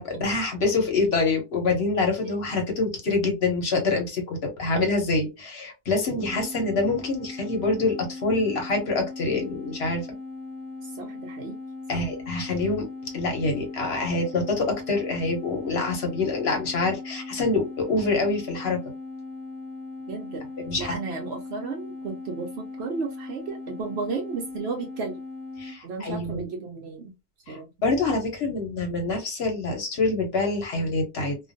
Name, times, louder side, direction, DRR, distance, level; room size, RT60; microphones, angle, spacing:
voice 1, 0.0-10.0 11.9-12.9 13.1-18.8 20.6-21.0 25.6-26.5 27.5-31.4, left 3 dB, 50° left, 0.9 m, -26 dB
sound 1, 6.2-25.8, left 3 dB, 75° left, 1.0 m, -39 dB
voice 2, 10.8-11.6 11.9-12.0 20.1-20.5 20.8-25.2 25.8-27.1 27.5-27.7, right 4 dB, 75° right, 0.6 m, -34 dB
2.4 x 2.2 x 2.5 m
omnidirectional pair, 1.6 m